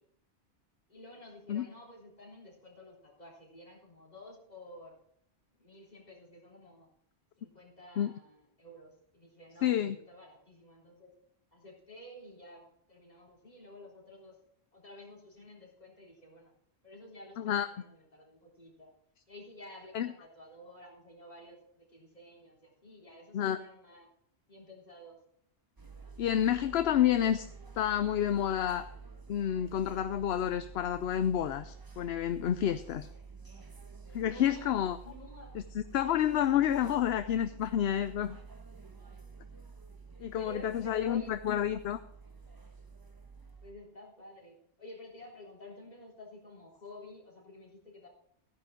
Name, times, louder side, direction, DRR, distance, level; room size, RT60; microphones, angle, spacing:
voice 1, 0.9-5.0 5.5-6.9 7.4-11.1 11.5-14.4 14.7-16.5 16.8-18.9 19.3-24.1 24.5-25.2 34.2-35.6 40.2-41.3 43.6-48.1, left 1 dB, 40° left, -3 dB, 3.8 m, -52 dB
voice 2, 9.6-10.0 17.4-17.7 19.9-20.1 23.3-23.6 26.2-27.5 27.8-28.9 29.3-33.1 34.1-35.0 35.7-38.4 40.2-42.0, left 10 dB, 70° left, 11 dB, 0.8 m, -29 dB
sound 1, 25.8-43.7, right 4 dB, 20° right, 1.0 m, -50 dB
14.0 x 10.5 x 3.7 m, 0.68 s
omnidirectional pair, 1.1 m